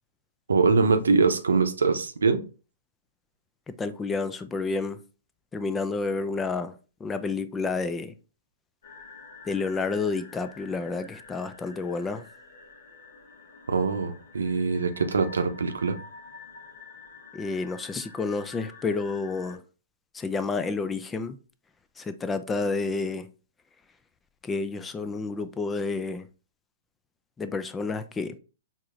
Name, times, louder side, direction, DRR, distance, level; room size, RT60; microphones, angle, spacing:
voice 1, 0.5-2.4 13.7-16.0, right 4 dB, 80° right, 0.6 m, -23 dB
voice 2, 3.7-5.0 5.5-6.8 7.0-8.1 9.5-12.3 17.3-19.6 20.1-21.4 22.0-23.3 24.4-26.3 27.4-28.4, left 4 dB, 15° left, 0.3 m, -30 dB
sound 1, 8.8-19.6, left 4 dB, 65° left, 1.2 m, -48 dB
4.6 x 2.9 x 2.5 m
hypercardioid pair, 125°, 0 cm